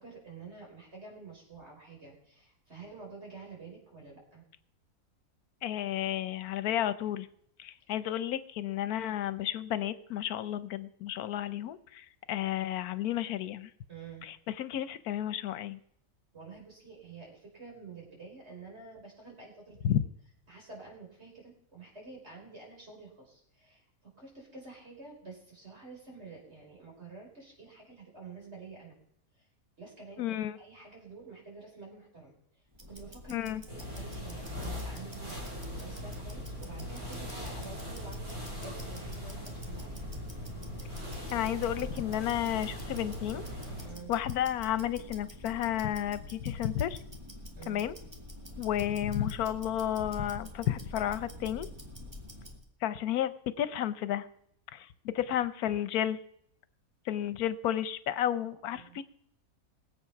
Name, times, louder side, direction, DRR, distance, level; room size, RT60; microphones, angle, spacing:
voice 1, 0.0-4.4 7.8-7.9 13.9-14.2 16.3-20.0 20.5-29.0 29.3-29.5 29.8-33.6 33.9-40.1 43.8-44.1 47.6-47.9 58.6-59.0, right 4 dB, 45° right, -1 dB, 5.1 m, -49 dB
voice 2, 5.6-7.3 7.6-13.7 14.2-15.8 19.8-20.0 30.2-30.6 33.3-33.6 41.3-43.4 44.1-47.0 47.7-48.0 48.6-51.7 52.8-54.3 54.7-56.2 57.1-59.0, left 11 dB, 85° left, 14 dB, 1.2 m, -32 dB
Tick-tock, 32.7-52.6, left 1 dB, 15° right, 2.0 m, -46 dB
sound 1, 33.7-44.0, left 1 dB, 85° right, 5.4 m, -40 dB
20.0 x 8.1 x 5.8 m, 0.71 s
omnidirectional pair, 1.6 m